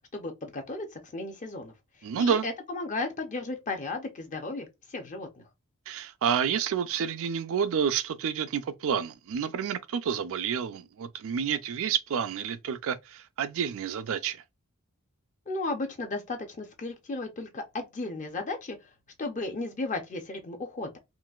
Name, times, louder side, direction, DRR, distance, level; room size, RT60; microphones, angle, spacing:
voice 1, 0.1-1.7 2.2-5.4 15.5-18.9 19.2-21.0, left 2 dB, 35° left, 0.5 m, -35 dB
voice 2, 2.0-2.5 5.9-14.4, right 7 dB, 65° right, 0.4 m, -29 dB
3.8 x 2.4 x 2.3 m
head